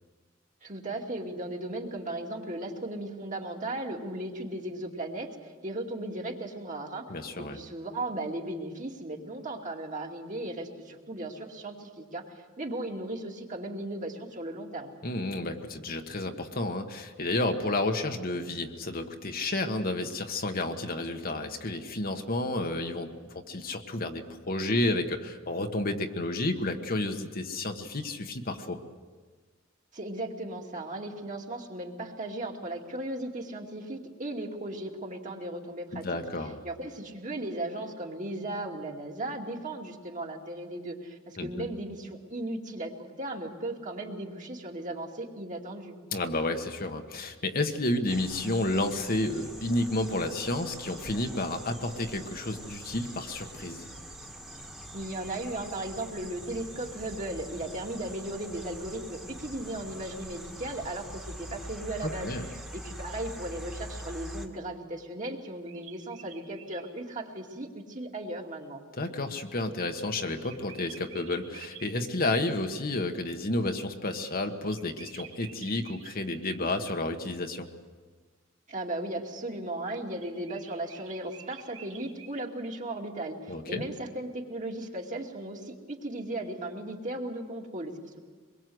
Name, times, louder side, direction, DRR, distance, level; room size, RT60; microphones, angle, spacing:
voice 1, 0.6-7.1 7.4-15.0 29.9-36.1 36.6-45.9 54.9-62.3 62.7-68.8 78.7-88.2, right 1 dB, 40° right, 1 dB, 2.5 m, -36 dB
voice 2, 7.1-7.6 15.0-28.8 35.9-36.6 41.4-41.7 46.1-53.8 62.0-62.5 68.9-77.7 83.5-83.8, left 2 dB, 45° left, 5 dB, 1.5 m, -31 dB
sound 1, 48.1-64.5, right 1 dB, 5° right, 1.8 m, -44 dB
sound 2, 65.4-66.9 69.9-71.9 74.7-76.6 80.2-82.4, right 9 dB, 80° right, 2.6 m, -49 dB
24.5 x 22.0 x 7.9 m, 1.4 s
head